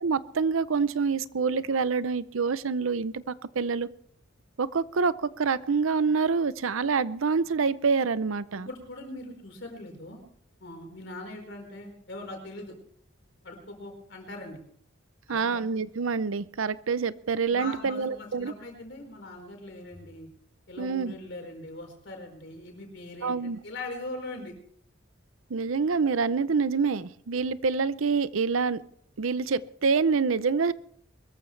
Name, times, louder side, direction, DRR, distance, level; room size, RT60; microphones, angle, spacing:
voice 1, 0.0-3.9 4.6-8.7 15.3-18.5 20.8-21.1 23.2-23.6 25.5-28.8 29.2-30.7, right 5 dB, 85° right, 16 dB, 0.6 m, -26 dB
voice 2, 8.5-10.2 10.6-12.7 13.4-14.6 15.3-15.7 17.5-20.3 20.7-24.5, left 2 dB, 60° left, 2 dB, 4.7 m, -41 dB
23.0 x 14.0 x 3.3 m, 0.64 s
head